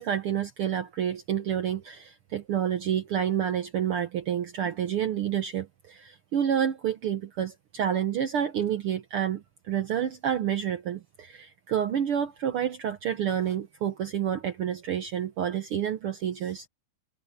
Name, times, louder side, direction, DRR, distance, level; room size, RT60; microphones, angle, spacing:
voice 1, 0.0-16.7, right 9 dB, 90° right, 1.2 m, -29 dB
omnidirectional pair, 4.0 m